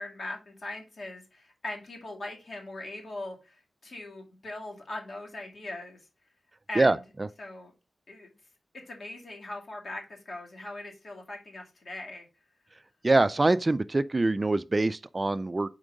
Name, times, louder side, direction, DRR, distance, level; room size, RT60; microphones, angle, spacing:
voice 1, 0.0-6.0 6.7-7.0 7.4-7.7 8.1-8.3 8.7-12.3, left 2 dB, 60° left, 2.2 m, -40 dB
voice 2, 6.8-7.3 13.0-15.7, right 2 dB, 30° right, 0.3 m, -24 dB
4.9 x 4.5 x 5.1 m
wide cardioid pair, 105°, 0 cm